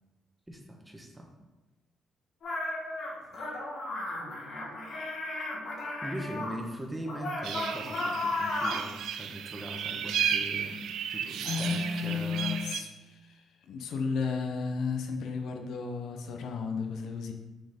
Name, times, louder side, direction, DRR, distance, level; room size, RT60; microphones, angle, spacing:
voice 1, 0.5-1.3 6.0-12.7, equal, 10° right, 2 dB, 1.0 m, -40 dB
sound 1, 2.4-6.6 7.0-8.9, left 2 dB, 60° left, 1.4 m, -34 dB
sound 2, 7.4-12.8, right 8 dB, 75° right, 0.3 m, -34 dB
voice 2, 11.4-17.3, left 5 dB, 75° left, 4 dB, 0.7 m, -33 dB
5.9 x 4.4 x 3.6 m, 1.1 s
cardioid pair, 90°, 0 cm